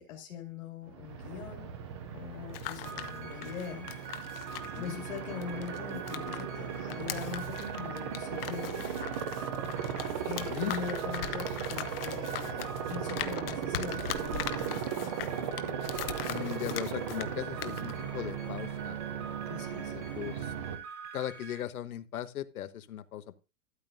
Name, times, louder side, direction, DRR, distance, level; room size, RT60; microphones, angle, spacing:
voice 1, 0.0-1.7 2.1-4.5 4.7-8.9 10.2-15.1 19.5-19.9, left 7 dB, 60° left, 0 dB, 2.5 m, -42 dB
Aircraft, 0.9-20.8, right 7 dB, 20° right, 0.5 m, -37 dB
sound 1, 2.3-6.4 6.7-17.3 17.6-17.9, left 11 dB, 40° left, 0.8 m, -40 dB
sound 2, 2.8-21.6, right 7 dB, 70° right, 3.8 m, -46 dB
voice 2, 4.6-5.0 10.4-10.7 16.3-19.0 19.7-20.5 21.1-23.4, left 11 dB, 80° left, 13 dB, 1.1 m, -38 dB
12.5 x 8.7 x 2.6 m, 0.30 s
hypercardioid pair, 160°, 43 cm